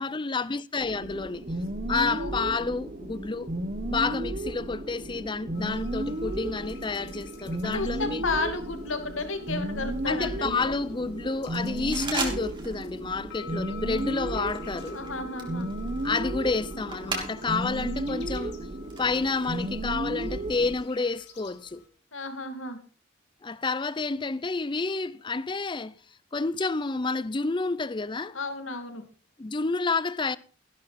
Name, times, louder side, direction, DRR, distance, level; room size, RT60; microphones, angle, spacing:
voice 1, 0.0-1.5 1.9-3.5 3.9-8.2 10.1-15.0 16.0-18.7 19.0-21.9 23.4-26.0 26.3-28.4 29.4-30.4, left 4 dB, 25° left, 0.5 m, -29 dB
sound 1, 0.8-20.8, right 1 dB, 40° right, 1.3 m, -34 dB
voice 2, 2.0-2.5 7.6-10.7 14.9-15.7 22.1-22.8 28.3-29.0, left 3 dB, 80° left, 2.6 m, -33 dB
sound 2, 5.5-21.9, left 3 dB, 60° left, 3.1 m, -48 dB
sound 3, 11.9-12.8 13.1-13.5 14.0-17.7 18.1-19.6, right 3 dB, 25° right, 3.0 m, -37 dB
15.0 x 12.0 x 4.2 m
head